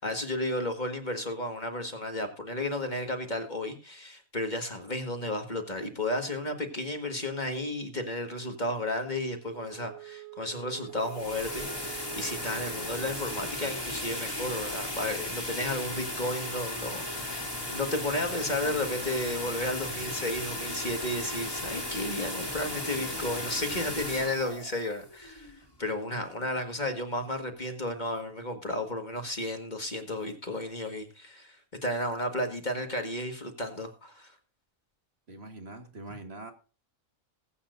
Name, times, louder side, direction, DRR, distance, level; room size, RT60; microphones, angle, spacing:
voice 1, 0.0-34.4, left 1 dB, 35° left, 5 dB, 1.8 m, -33 dB
Wind instrument woodwind instrument, 9.4-13.6, right 22 dB, 75° right, 1.2 m, -46 dB
sound 1, 10.8-25.8, left 1 dB, 15° left, 2.4 m, -36 dB
voice 2, 35.3-36.5, right 2 dB, 50° right, 5 dB, 1.8 m, -43 dB
20.0 x 8.6 x 2.6 m, 0.36 s
omnidirectional pair, 1.4 m